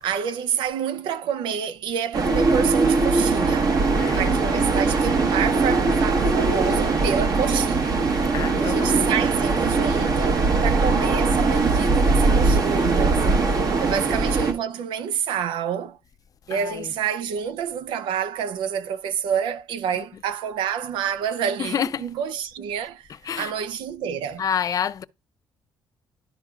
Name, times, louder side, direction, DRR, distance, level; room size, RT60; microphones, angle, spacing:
voice 1, 0.0-3.9 4.2-16.0 16.5-23.1 23.4-24.5, right 8 dB, 85° right, 0.6 m, -28 dB
sound 1, 2.1-14.5, right 3 dB, 50° right, 1.2 m, -21 dB
voice 2, 4.0-4.3 8.3-9.1 12.8-12.9 16.5-16.9 19.9-20.0 21.6-21.9 23.3-23.5 24.4-25.0, left 8 dB, 50° left, 0.5 m, -28 dB
12.0 x 4.6 x 2.4 m
cardioid pair, 90°, 8 cm